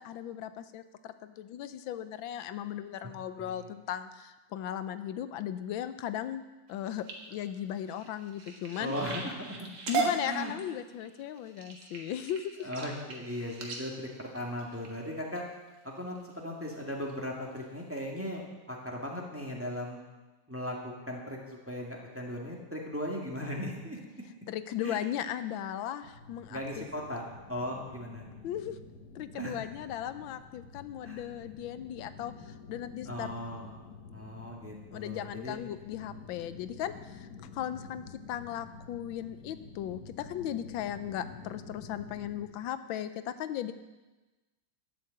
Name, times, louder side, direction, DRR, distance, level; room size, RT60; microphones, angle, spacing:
voice 1, 0.0-6.4 6.7-8.9 9.9-12.7 24.5-26.9 28.4-28.8 29.1-33.3 34.9-43.7, left 10 dB, 90° left, 12 dB, 1.5 m, -37 dB
sound 1, 6.7-15.4 16.0-16.3 16.7-17.1 17.6-17.7 18.0-18.1, right 4 dB, 75° right, 2.4 m, -38 dB
voice 2, 8.8-9.7 10.0-10.5 12.6-15.4 15.8-20.0 20.5-24.0 24.8-25.0 26.5-27.2 27.5-28.2 29.3-29.5 31.0-31.3 33.1-33.8 34.1-35.6, equal, 5° right, -2 dB, 1.8 m, -38 dB
sound 2, 26.0-42.5, left 5 dB, 55° left, 1.5 m, -49 dB
11.0 x 8.8 x 7.8 m, 1.2 s
omnidirectional pair, 2.1 m